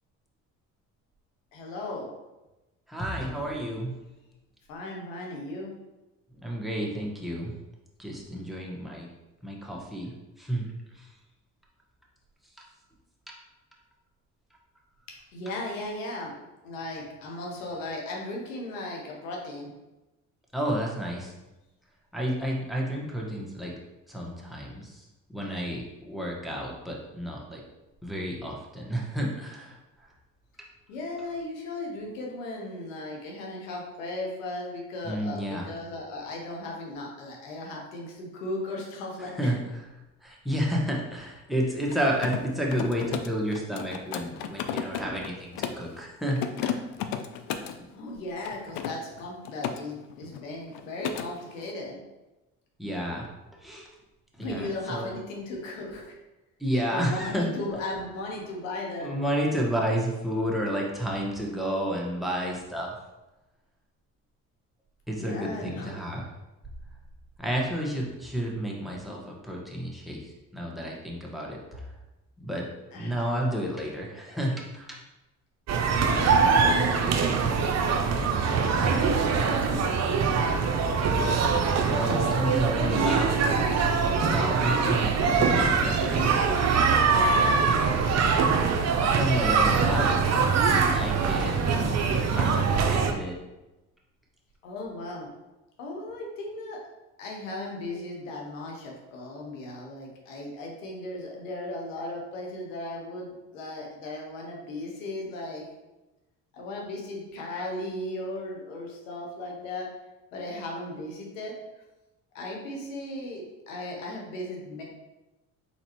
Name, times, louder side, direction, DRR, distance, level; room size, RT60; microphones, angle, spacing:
voice 1, 1.5-2.1 4.7-5.7 15.3-16.3 16.6-19.7 30.9-39.6 47.9-52.0 54.4-56.1 56.9-59.1 65.2-66.0 72.9-73.2 76.0-77.2 87.1-88.1 94.6-95.3 95.8-96.8 97.2-105.6 106.5-109.9 110.3-111.5 112.3-114.8, left 2 dB, 90° left, -1 dB, 1.0 m, -36 dB
voice 2, 2.9-3.9 6.4-7.5 8.0-9.1 9.4-10.7 10.9-11.1 20.5-21.3 22.1-23.7 24.1-27.6 28.0-30.1 35.0-35.7 39.2-39.9 40.2-46.8 52.8-53.3 53.6-53.9 54.4-55.1 56.6-57.5 59.0-63.0 65.1-66.3 67.4-71.9 72.4-72.7 72.9-75.0 81.5-83.3 84.2-86.3 89.1-91.8 92.1-93.4, equal, ahead, -2 dB, 1.2 m, -31 dB
Mechanisms, 41.8-45.9 46.3-47.8 48.4-49.8 50.1-50.4 50.7-51.3, left 9 dB, 65° left, 0.5 m, -34 dB
sound 1, 75.7-93.1, right 5 dB, 45° right, 0.6 m, -23 dB
4.1 x 4.0 x 3.0 m, 1.0 s
hypercardioid pair, 60°, 38 cm